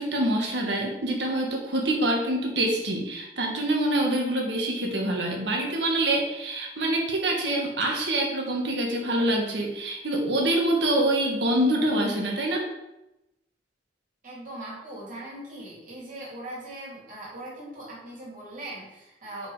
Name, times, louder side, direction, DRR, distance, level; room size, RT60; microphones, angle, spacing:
voice 1, 0.0-12.7, right 1 dB, 70° right, 0 dB, 1.6 m, -25 dB
voice 2, 14.2-19.5, right 1 dB, 45° right, -5 dB, 2.7 m, -40 dB
6.0 x 5.1 x 4.9 m, 0.93 s
head